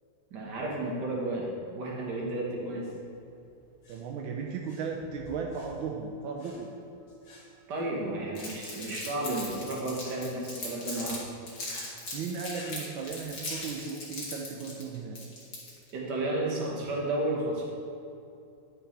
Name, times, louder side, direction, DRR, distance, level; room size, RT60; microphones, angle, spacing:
voice 1, 0.3-2.9 7.7-11.2 15.9-17.6, right 2 dB, 60° right, -3 dB, 1.9 m, -32 dB
sound 1, 2.7-13.8, left 1 dB, 85° left, 2.6 m, -53 dB
voice 2, 3.9-6.7 12.1-15.2, right 5 dB, 85° right, 1 dB, 1.4 m, -36 dB
Crumpling crinkling, 8.3-11.2 11.5-15.9, left 2 dB, 55° left, 2.3 m, -39 dB
11.0 x 6.2 x 3.3 m, 2.7 s
omnidirectional pair, 2.2 m